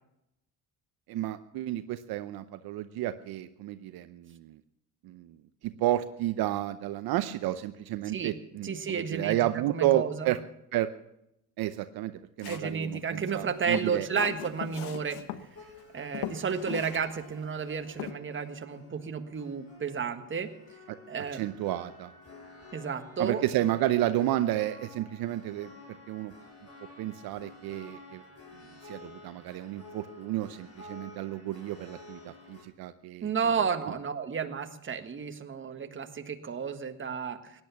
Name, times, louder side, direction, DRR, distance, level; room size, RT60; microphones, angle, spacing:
voice 1, 1.1-4.6 5.0-5.4 5.6-10.4 10.7-10.9 11.6-12.1 12.4-14.3 21.3-22.1 23.2-25.7 26.1-26.3 27.0-28.2 28.8-33.3, right 14 dB, 70° right, 11 dB, 0.8 m, -31 dB
voice 2, 8.6-9.4 9.7-10.3 12.5-15.2 15.9-20.5 21.1-21.4 22.7-23.4 33.2-37.5, right 6 dB, 30° right, 7 dB, 1.6 m, -32 dB
Walk footsteps, 12.4-12.8 13.5-15.4 15.8-15.9 16.1-17.0 17.3-17.4 18.0-18.1, left 11 dB, 85° left, 1.2 m, -38 dB
sound 1, 15.5-32.6, left 3 dB, 40° left, 6.2 m, -51 dB
17.5 x 10.5 x 7.1 m, 0.82 s
cardioid pair, 100°, 38 cm